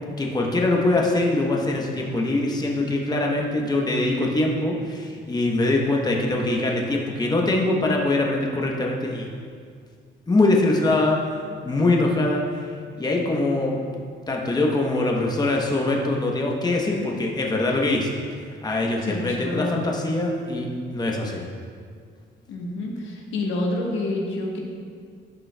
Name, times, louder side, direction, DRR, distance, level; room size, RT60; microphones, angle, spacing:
voice 1, 0.2-9.3 10.3-11.2 11.6-13.9 14.3-18.1 18.6-21.5, left 2 dB, 20° left, 0 dB, 0.9 m, -23 dB
voice 2, 19.0-19.8 22.5-24.6, left 2 dB, 80° left, -1 dB, 1.1 m, -28 dB
11.5 x 5.2 x 2.2 m, 2.1 s
cardioid pair, 90°, 20 cm